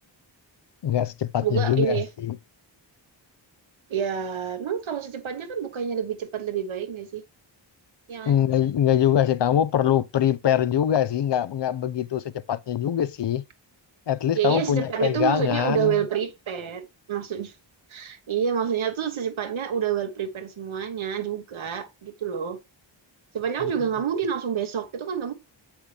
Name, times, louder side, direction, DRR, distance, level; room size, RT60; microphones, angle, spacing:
voice 1, 0.8-2.4 8.3-13.4 14.1-16.0 23.6-23.7, left 10 dB, 65° left, 0.7 m, -23 dB
voice 2, 1.4-2.1 3.9-7.2 8.1-8.4 14.3-17.5 17.9-22.6 23.3-25.3, right 8 dB, 90° right, 1.4 m, -28 dB
8.3 x 5.8 x 3.3 m
wide cardioid pair, 120°, 46 cm